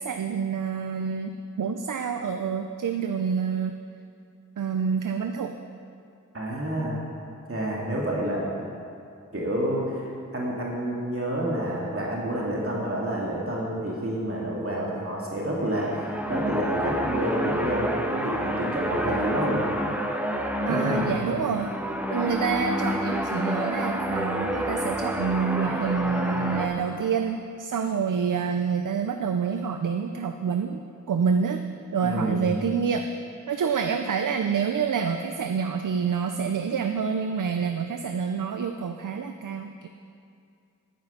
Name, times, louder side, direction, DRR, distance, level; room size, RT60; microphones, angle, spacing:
voice 1, 0.0-3.8 4.6-5.6 20.7-21.7 22.1-31.6 31.9-33.0 33.5-39.9, right 6 dB, 80° right, 6 dB, 0.6 m, -27 dB
voice 2, 6.3-7.0 7.5-8.5 9.3-19.6 20.7-21.4 32.0-32.4, right 1 dB, 45° right, -4 dB, 2.3 m, -29 dB
sound 1, 15.6-26.7, equal, 5° right, 1.2 m, -29 dB
11.5 x 9.4 x 5.7 m, 2.5 s
wide cardioid pair, 60°, 31 cm